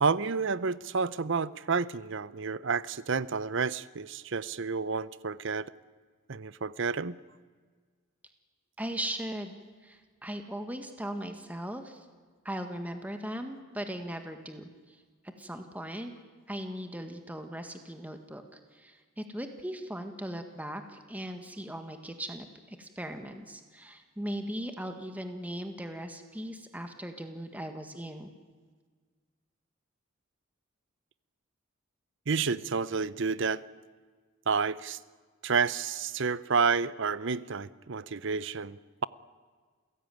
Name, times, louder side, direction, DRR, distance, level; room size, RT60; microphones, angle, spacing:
voice 1, 0.0-5.7 6.3-7.2 32.3-33.6 34.5-35.0 35.4-39.0, right 5 dB, 60° right, 18 dB, 0.7 m, -30 dB
voice 2, 8.8-9.6 9.8-12.1 12.5-15.0 15.4-16.1 16.5-28.3, right 1 dB, 10° right, 6 dB, 1.7 m, -38 dB
28.5 x 16.5 x 9.3 m, 1.5 s
head